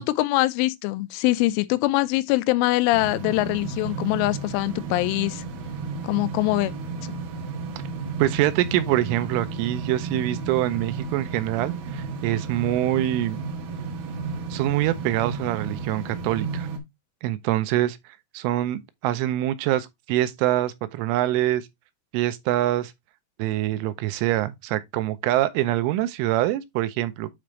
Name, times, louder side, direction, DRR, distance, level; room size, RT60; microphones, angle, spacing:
voice 1, 0.0-5.4 6.0-6.7 7.0-7.2, left 19 dB, 85° left, 3.0 m, -23 dB
sound 1, 2.9-16.8, right 4 dB, 70° right, 2.2 m, -33 dB
voice 2, 8.2-13.4 14.5-16.7 17.2-18.0 18.3-21.7 22.1-22.9 23.4-27.3, right 14 dB, 85° right, 3.2 m, -25 dB
8.7 x 5.1 x 3.1 m
omnidirectional pair, 5.7 m